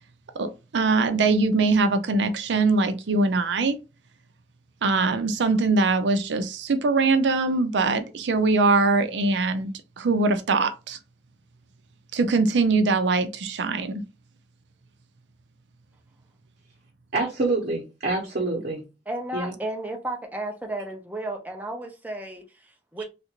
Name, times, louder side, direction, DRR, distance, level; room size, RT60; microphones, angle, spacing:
voice 1, 0.4-3.8 4.8-9.7 10.0-11.0 12.1-14.0, right 3 dB, 85° right, 0.5 m, -22 dB
voice 2, 17.1-18.8 19.3-19.5 23.0-23.1, right 3 dB, 55° right, 0.9 m, -26 dB
voice 3, 19.1-23.0, right 1 dB, 10° right, 0.6 m, -33 dB
3.2 x 2.5 x 2.9 m
head